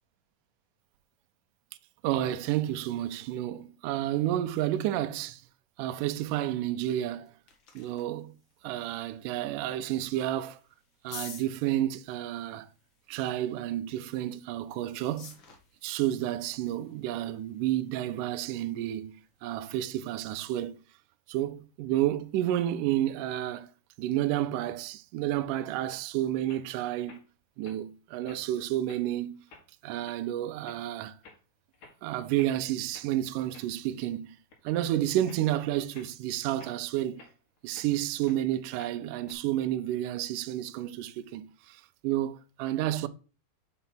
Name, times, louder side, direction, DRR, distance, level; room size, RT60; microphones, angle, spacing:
voice 1, 2.0-5.4 5.8-7.3 7.8-8.3 8.6-10.6 11.0-12.7 13.1-15.3 15.8-19.1 19.4-20.8 21.3-23.7 24.0-27.2 27.6-29.4 29.8-31.2 32.0-34.4 34.6-37.2 37.6-43.1, right 13 dB, 90° right, 1.8 m, -30 dB
sound 1, 7.0-19.6, left 5 dB, 85° left, 1.0 m, -53 dB
sound 2, 25.9-26.1 26.4-26.7 27.1-27.2 27.6-27.8 28.3-28.6 28.9-29.1 29.5-29.7 30.0-30.2 30.7-30.8 31.2-31.4 31.7-32.0 32.4-32.6 32.9-33.1 33.5-34.2 34.5-34.8 35.3-35.4 35.9-36.1 36.6-37.9 38.2-38.4 38.8-39.3, left 3 dB, 60° left, 3.2 m, -53 dB
5.7 x 5.6 x 5.8 m
omnidirectional pair, 4.4 m